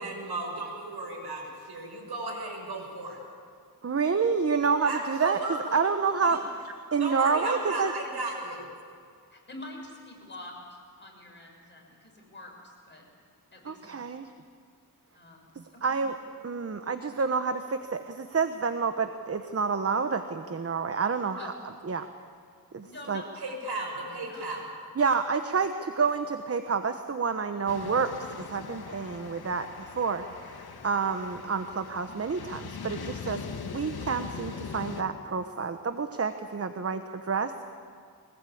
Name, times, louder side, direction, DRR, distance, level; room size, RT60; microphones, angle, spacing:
voice 1, 0.0-3.2 4.8-5.6 6.2-6.4 7.0-8.7 23.4-24.6, right 2 dB, 90° right, 1 dB, 6.2 m, -34 dB
voice 2, 3.8-7.9 13.6-14.3 15.5-16.2 16.4-21.5 21.9-22.1 22.7-23.2 25.0-33.4 33.7-37.6, right 5 dB, 40° right, 8 dB, 1.0 m, -29 dB
voice 3, 9.3-13.0 13.5-14.0 15.1-15.5 15.9-16.0 21.4-21.6 22.8-23.2 23.6-23.7 24.0-24.6, left 2 dB, 30° left, -1 dB, 6.7 m, -46 dB
sound 1, 27.7-35.0, left 5 dB, 75° left, 1.6 m, -41 dB
23.0 x 20.0 x 8.6 m, 2.2 s
wide cardioid pair, 90°, 38 cm